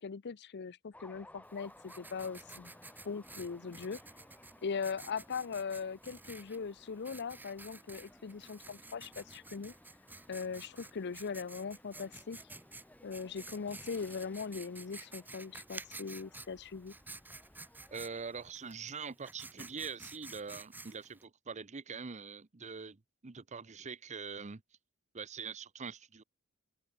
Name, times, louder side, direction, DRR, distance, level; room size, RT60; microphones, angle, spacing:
voice 1, 0.0-2.7 3.0-4.0 4.6-9.7 10.3-12.4 13.0-16.9, left 5 dB, 50° left, 0.6 m, -40 dB
sound 1, 0.9-18.5, left 1 dB, 5° left, 2.3 m, -60 dB
Writing, 1.4-21.2, right 2 dB, 10° right, 1.4 m, -52 dB
voice 2, 17.9-24.6 25.1-26.2, right 5 dB, 30° right, 0.7 m, -43 dB
open air
head